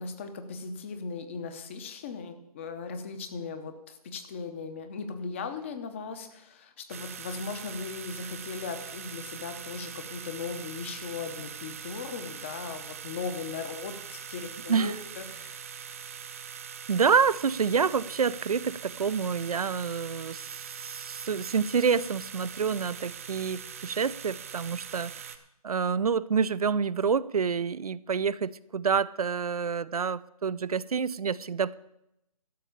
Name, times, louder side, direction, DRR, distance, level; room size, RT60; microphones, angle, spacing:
voice 1, 0.0-15.6, left 5 dB, 20° left, 9 dB, 0.7 m, -38 dB
sound 1, 6.9-25.4, right 7 dB, 25° right, 0.5 m, -42 dB
voice 2, 16.9-25.3 25.6-31.7, right 6 dB, 75° right, 17 dB, 0.5 m, -28 dB
12.5 x 5.5 x 8.4 m, 0.83 s
hypercardioid pair, 160°, 19 cm